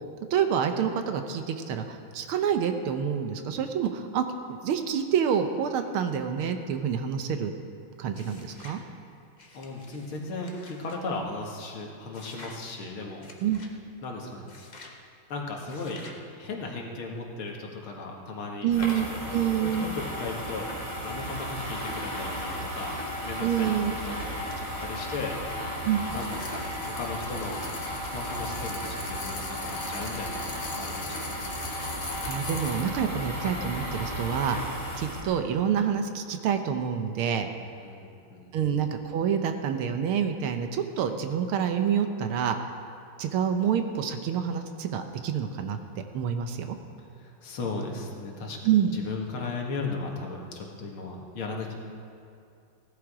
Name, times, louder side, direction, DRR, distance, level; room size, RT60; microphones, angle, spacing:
voice 1, 0.3-7.5 8.0-8.8 13.4-13.6 18.6-19.9 23.4-23.9 25.8-26.0 32.2-34.6 35.0-37.5 38.5-42.6 43.2-45.8 46.1-46.8 48.6-49.0, right 8 dB, 75° right, 7 dB, 1.7 m, -27 dB
sound 1, 8.1-8.8 9.4-11.0 12.1-12.6 13.2-13.7 14.5-15.0 15.7-16.2, left 2 dB, 30° left, 0.8 m, -50 dB
voice 2, 9.5-13.2 14.0-14.5 15.3-16.1 16.4-18.7 19.1-20.7 21.0-25.4 25.8-25.9 26.1-27.6 27.9-31.5 37.8-38.5 47.1-48.6 48.9-51.8, left 3 dB, 70° left, 0 dB, 2.4 m, -36 dB
sound 2, 18.7-35.2, equal, 15° left, 2.6 m, -34 dB
sound 3, 26.1-32.9, left 4 dB, 50° left, 1.8 m, -41 dB
16.5 x 11.5 x 4.9 m, 2.5 s
omnidirectional pair, 2.4 m